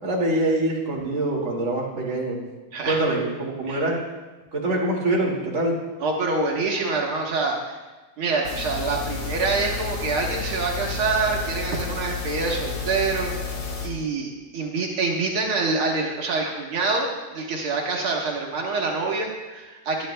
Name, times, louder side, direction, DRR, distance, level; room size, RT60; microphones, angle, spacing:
voice 1, 0.0-2.4 2.9-4.0 4.5-5.7, right 2 dB, 35° right, -3 dB, 2.5 m, -24 dB
voice 2, 2.7-3.0 3.7-3.8 6.0-7.8 8.2-17.1 17.3-20.1, right 3 dB, 80° right, -1 dB, 2.2 m, -26 dB
sound 1, 8.4-13.9, left 4 dB, 70° left, 2.4 m, -31 dB
22.5 x 10.0 x 2.2 m, 1.2 s
omnidirectional pair, 2.3 m